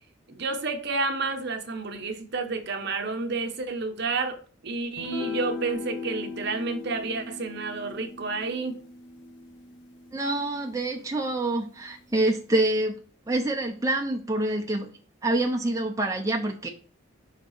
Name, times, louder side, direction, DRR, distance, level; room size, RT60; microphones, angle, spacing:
voice 1, 0.3-4.4 4.6-8.8, right 3 dB, 55° right, 0.9 m, -30 dB
sound 1, 5.0-11.5, left 4 dB, 60° left, 1.1 m, -38 dB
voice 2, 10.1-13.0 13.3-14.9 15.2-16.7, right 2 dB, 15° right, 0.5 m, -26 dB
5.6 x 3.6 x 5.4 m
head